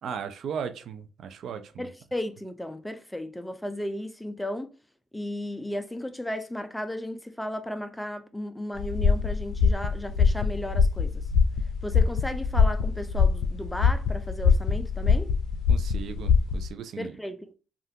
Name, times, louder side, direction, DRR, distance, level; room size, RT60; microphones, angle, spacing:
voice 1, 0.0-1.9 15.7-17.2, right 7 dB, 70° right, 0.4 m, -37 dB
voice 2, 1.8-4.7 5.1-11.3 11.8-15.3 17.0-17.5, left 1 dB, 5° left, 0.4 m, -34 dB
sound 1, 8.8-16.7, left 5 dB, 80° left, 0.4 m, -23 dB
3.4 x 2.4 x 2.7 m
cardioid pair, 90°, 0 cm